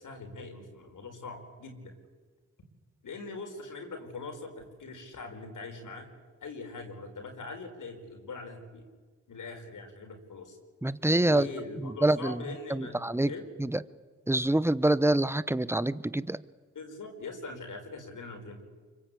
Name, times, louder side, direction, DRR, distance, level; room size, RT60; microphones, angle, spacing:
voice 1, 0.0-1.9 3.0-6.1 6.4-8.8 9.3-10.6 11.2-13.0 13.3-13.5 16.7-18.6, left 3 dB, 65° left, 3 dB, 5.1 m, -42 dB
voice 2, 10.8-11.5 12.0-12.4 12.7-13.3 13.6-13.8 14.3-16.4, right 1 dB, 5° right, 17 dB, 1.0 m, -26 dB
25.0 x 23.5 x 8.5 m, 1.4 s
supercardioid pair, 40°, 33 cm